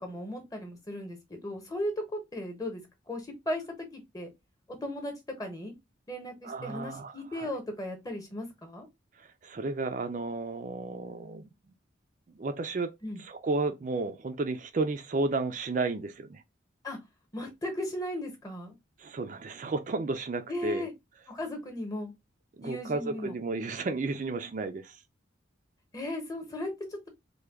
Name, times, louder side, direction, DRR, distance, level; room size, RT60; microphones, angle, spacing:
voice 1, 0.0-4.3 4.8-5.7 6.1-8.9 13.0-13.2 16.8-17.0 17.3-18.8 20.5-20.9 21.3-22.1 22.6-23.4 25.9-27.1, left 1 dB, 20° left, 0.9 m, -36 dB
voice 2, 6.4-7.5 9.2-11.5 12.4-12.9 13.3-16.4 19.0-20.9 22.6-25.0, right 3 dB, 40° right, 0.4 m, -32 dB
3.3 x 2.2 x 3.4 m
head